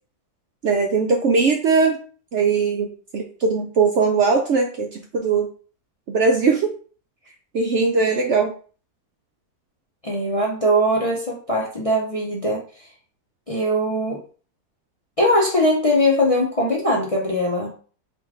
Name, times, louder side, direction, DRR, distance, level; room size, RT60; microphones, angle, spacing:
voice 1, 0.6-2.0 2.3-2.9 3.1-5.5 6.1-6.7 7.5-8.5, right 4 dB, 65° right, 2 dB, 0.7 m, -20 dB
voice 2, 10.0-12.6 13.5-14.2 15.2-17.7, equal, 35° left, -3 dB, 0.5 m, -21 dB
3.8 x 2.5 x 4.6 m, 0.41 s
omnidirectional pair, 1.7 m